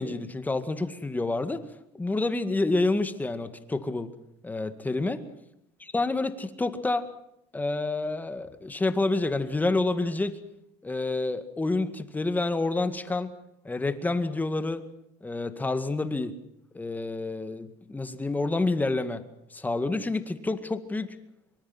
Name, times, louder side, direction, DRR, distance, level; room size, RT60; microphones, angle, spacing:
voice 1, 0.0-1.6 1.9-4.1 4.4-5.2 5.9-7.1 7.5-10.4 10.8-13.3 13.6-14.9 15.2-16.3 16.7-19.2 19.5-21.2, left 2 dB, 10° left, 10 dB, 2.0 m, -28 dB
25.0 x 24.0 x 6.1 m, 0.80 s
cardioid pair, 135°, 15 cm